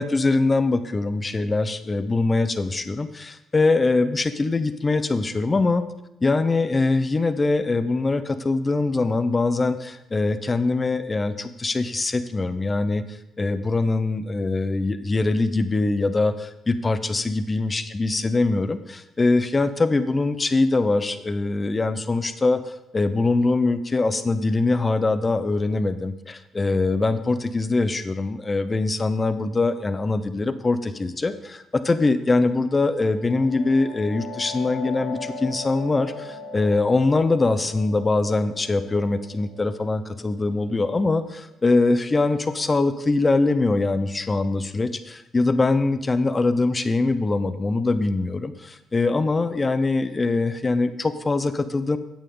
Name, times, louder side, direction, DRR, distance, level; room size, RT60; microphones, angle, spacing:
voice 1, 0.0-5.8 6.2-52.0, left 3 dB, 25° left, 11 dB, 0.7 m, -23 dB
sound 1, 32.9-42.4, left 3 dB, 85° left, 2.1 m, -40 dB
9.3 x 8.8 x 3.8 m, 0.90 s
cardioid pair, 90°, 0 cm